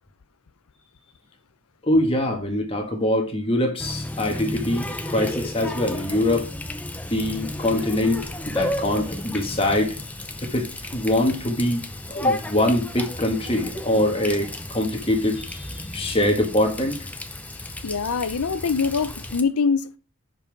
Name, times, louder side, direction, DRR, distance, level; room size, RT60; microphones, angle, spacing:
voice 1, 1.8-6.5 7.1-10.0 10.4-17.0, left 1 dB, 25° left, 1.4 m, -23 dB
Water tap faucet, 3.8-19.4, left 1 dB, 5° left, 0.5 m, -33 dB
voice 2, 17.8-20.0, left 5 dB, 85° left, 0.6 m, -24 dB
7.0 x 5.4 x 4.7 m
head